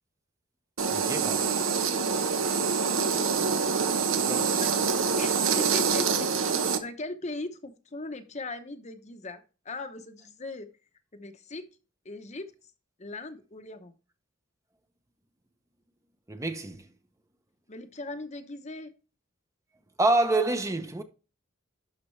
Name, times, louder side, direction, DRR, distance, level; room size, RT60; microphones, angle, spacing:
sound 1, 0.8-6.8, right 5 dB, 75° right, 1.1 m, -26 dB
voice 1, 0.9-1.5 4.3-4.6 16.3-16.9 20.0-21.0, right 2 dB, 15° right, 0.8 m, -27 dB
voice 2, 2.2-3.6 4.6-4.7 5.2-10.7 11.1-11.6 12.0-12.5 13.0-13.9 17.7-18.9, left 2 dB, 35° left, 0.9 m, -39 dB
11.5 x 5.9 x 3.2 m
head